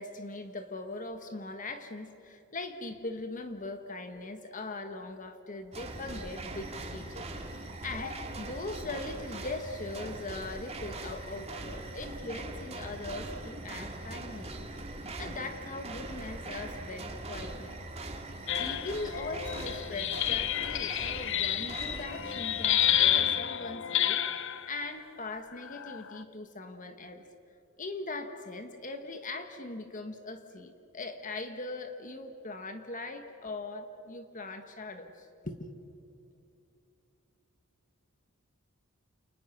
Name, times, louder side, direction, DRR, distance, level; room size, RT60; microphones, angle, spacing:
voice 1, 0.0-7.3 7.8-14.7 15.2-17.8 18.6-27.2 27.8-35.7, left 2 dB, 35° left, 7 dB, 1.4 m, -40 dB
sound 1, 5.7-23.4, right 2 dB, 30° right, 2.4 m, -41 dB
sound 2, 18.5-24.7 25.6-26.2, left 11 dB, 60° left, 0.8 m, -30 dB
29.5 x 29.5 x 6.0 m, 2.7 s
head